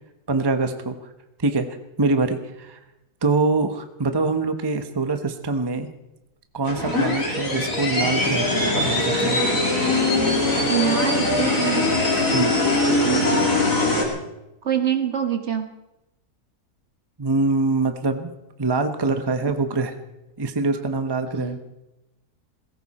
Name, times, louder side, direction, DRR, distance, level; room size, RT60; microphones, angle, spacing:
voice 1, 0.3-1.0 1.4-1.7 2.0-2.8 3.2-5.9 6.5-9.4 12.3-12.5 17.2-18.3 18.6-19.9 20.4-21.6, right 3 dB, 20° right, 7 dB, 1.0 m, -24 dB
sound 1, 6.6-14.0, left 2 dB, 55° left, 3.7 m, -21 dB
voice 2, 10.7-11.9 13.0-13.6 14.6-15.7 21.4-21.6, right 9 dB, 50° right, 7 dB, 1.4 m, -25 dB
19.5 x 17.0 x 4.3 m, 0.93 s
omnidirectional pair, 1.7 m